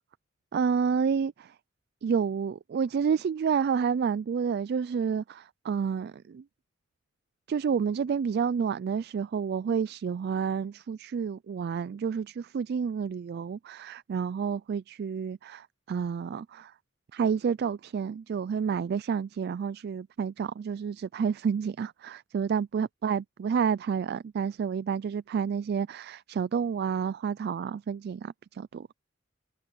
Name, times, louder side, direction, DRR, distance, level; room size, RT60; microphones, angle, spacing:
voice 1, 0.5-1.5 2.0-6.4 7.5-16.7 17.1-28.9, right 6 dB, 55° right, 0.3 m, -29 dB
head